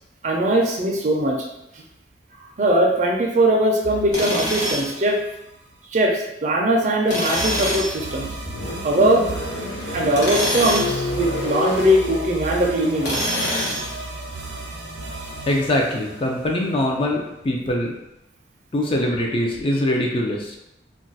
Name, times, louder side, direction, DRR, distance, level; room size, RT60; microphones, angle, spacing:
voice 1, 0.2-1.4 2.6-5.2 5.9-8.3 8.8-9.2 9.9-13.2, right 1 dB, 40° right, 0 dB, 0.4 m, -20 dB
sound 1, 3.8-5.7 7.3-17.1, right 2 dB, 85° right, 0.6 m, -35 dB
Tools, 4.1-5.0 7.1-7.9 10.1-11.0 13.0-13.9, equal, 75° left, 1.1 m, -25 dB
sound 2, 7.8-17.8, left 2 dB, 90° left, 0.6 m, -32 dB
voice 2, 15.5-17.9 18.7-20.6, left 1 dB, 30° left, 0 dB, 0.4 m, -23 dB
2.4 x 2.2 x 3.9 m, 0.86 s
head